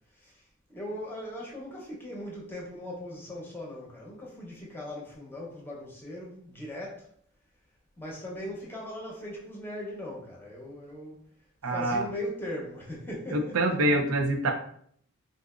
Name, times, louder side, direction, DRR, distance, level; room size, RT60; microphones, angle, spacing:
voice 1, 0.1-0.4 0.7-7.1 8.0-11.2 11.6-13.6, left 1 dB, 10° left, 0.7 m, -39 dB
voice 2, 11.6-12.0 13.3-14.5, right 1 dB, 85° right, 0.6 m, -25 dB
3.9 x 2.5 x 2.4 m
head